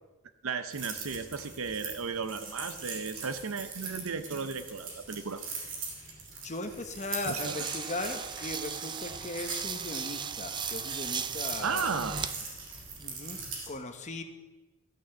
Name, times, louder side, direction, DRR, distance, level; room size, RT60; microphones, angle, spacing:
voice 1, 0.4-5.4 7.3-7.6 11.6-12.3, right 5 dB, 80° right, 11 dB, 0.7 m, -34 dB
sound 1, 0.7-13.7, right 4 dB, 60° right, 2.6 m, -41 dB
voice 2, 6.4-12.2 13.0-13.4 13.7-14.2, left 2 dB, 35° left, 7 dB, 1.0 m, -38 dB
sound 2, 7.4-12.3 12.8-13.5, right 7 dB, 20° right, 0.4 m, -37 dB
13.5 x 6.1 x 7.0 m, 1.1 s
head